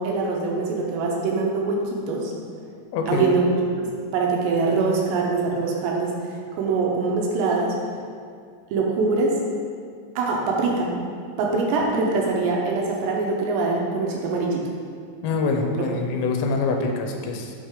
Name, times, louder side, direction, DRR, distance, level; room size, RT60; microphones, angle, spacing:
voice 1, 0.0-2.3 3.1-3.5 3.8-7.8 8.7-9.4 10.2-10.9 11.4-14.6 15.8-15.9, right 3 dB, 80° right, -1 dB, 2.9 m, -23 dB
voice 2, 2.9-3.4 15.2-17.5, left 3 dB, 80° left, 3 dB, 2.9 m, -25 dB
8.5 x 5.5 x 3.6 m, 2.1 s
omnidirectional pair, 5.1 m